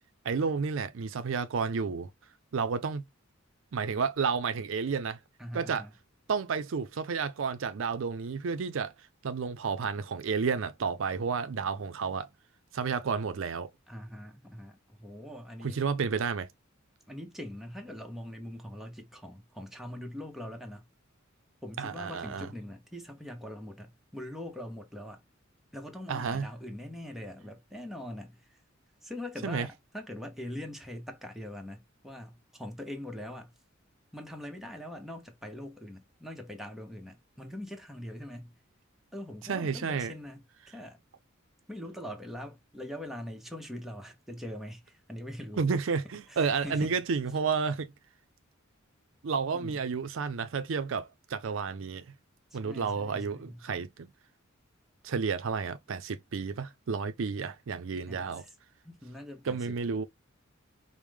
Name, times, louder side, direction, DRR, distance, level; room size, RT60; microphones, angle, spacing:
voice 1, 0.2-2.1 2.5-3.0 3.7-5.2 5.5-5.8 6.3-8.9 9.2-12.3 12.7-13.7 15.6-16.5 21.8-22.5 26.1-26.5 29.4-29.7 39.5-40.1 45.6-47.9 49.2-52.0 52.5-54.1 55.0-58.4 59.5-60.0, right 5 dB, 70° right, 0.4 m, -31 dB
voice 2, 5.4-5.9 13.9-15.9 17.1-20.9 21.6-25.2 25.7-28.6 29.0-33.5 34.1-38.5 39.1-41.0 41.7-45.7 46.3-46.9 49.5-49.8 52.5-53.6 58.1-58.5 58.8-59.7, left 1 dB, ahead, 0.8 m, -42 dB
4.7 x 2.1 x 3.4 m
head